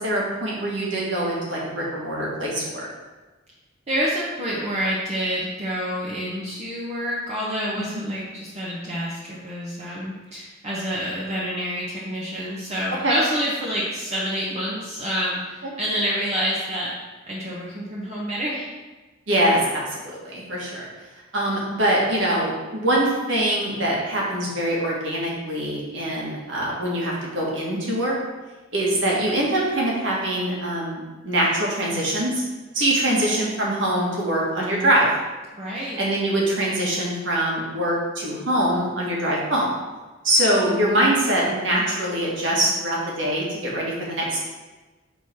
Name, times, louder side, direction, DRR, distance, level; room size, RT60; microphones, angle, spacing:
voice 1, 0.0-2.9 7.7-8.0 13.0-13.1 19.3-19.6 19.9-20.9 21.3-28.2 28.7-32.4 32.7-35.1 36.0-39.7 40.2-44.4, right 1 dB, 65° right, -4 dB, 1.7 m, -23 dB
voice 2, 3.9-16.9 17.3-18.7 32.9-33.4 35.5-36.0 40.5-41.0, equal, 30° right, -6 dB, 0.9 m, -28 dB
4.8 x 3.9 x 5.8 m, 1.2 s
head